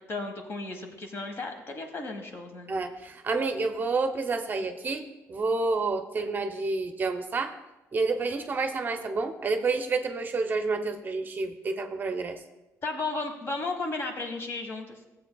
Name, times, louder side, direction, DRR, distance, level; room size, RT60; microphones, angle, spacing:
voice 1, 0.0-2.7 12.8-15.0, left 3 dB, 45° left, 4 dB, 1.4 m, -34 dB
voice 2, 2.7-7.6 7.9-12.4, right 3 dB, 35° right, 7 dB, 0.6 m, -29 dB
15.0 x 7.7 x 2.3 m, 1.0 s
cardioid pair, 125°, 6 cm